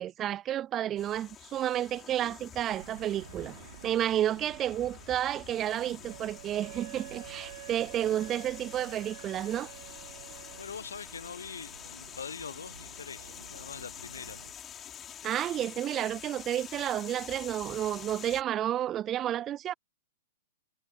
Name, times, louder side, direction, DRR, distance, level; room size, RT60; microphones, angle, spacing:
voice 1, 0.0-3.5 3.8-9.7 15.2-19.7, right 11 dB, 25° right, 0.4 m, -31 dB
sound 1, 1.0-18.4, left 9 dB, 25° left, 5.8 m, -47 dB
sound 2, 2.6-14.5, right 10 dB, 70° right, 2.6 m, -52 dB
Wind instrument woodwind instrument, 6.0-10.7, right 18 dB, 55° right, 1.0 m, -48 dB
voice 2, 10.6-14.4, left 6 dB, 85° left, 1.0 m, -43 dB
hypercardioid pair, 120°, 0 cm